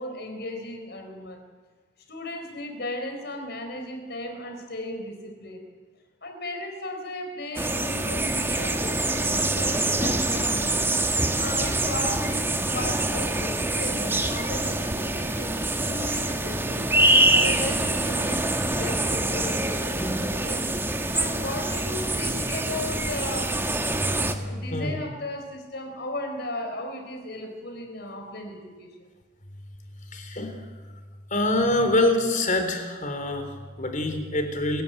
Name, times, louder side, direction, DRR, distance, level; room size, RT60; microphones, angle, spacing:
voice 1, 0.0-1.4 2.1-5.6 6.2-10.8 11.4-16.9 17.3-20.7 21.1-23.6 24.4-29.1, left 1 dB, 60° left, 5 dB, 4.5 m, -36 dB
sound 1, 7.6-24.3, right 2 dB, 10° right, 1.7 m, -25 dB
voice 2, 24.0-24.4 24.7-25.0 30.1-30.6 31.3-34.8, left 1 dB, 40° left, 6 dB, 3.5 m, -25 dB
27.0 x 16.0 x 9.0 m, 1.4 s
head